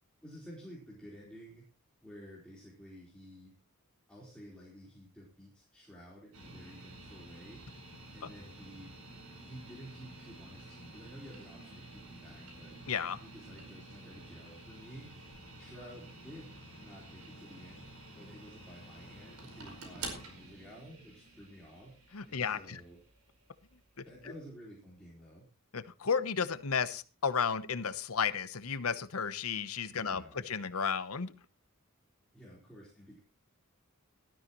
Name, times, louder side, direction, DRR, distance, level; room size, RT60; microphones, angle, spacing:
voice 1, 0.2-1.7 2.0-3.5 4.1-7.6 8.1-8.9 9.4-12.8 13.2-15.1 15.6-17.9 18.2-22.0 22.3-23.0 24.0-25.5 30.0-30.4 32.3-33.2, equal, 5° left, -6 dB, 4.0 m, -52 dB
sound 1, 6.3-24.4, right 2 dB, 85° right, 5.0 m, -50 dB
voice 2, 12.9-13.2 22.1-22.8 24.0-24.1 25.7-31.3, left 6 dB, 80° left, 13 dB, 0.9 m, -33 dB
18.0 x 12.5 x 3.1 m, 0.33 s
head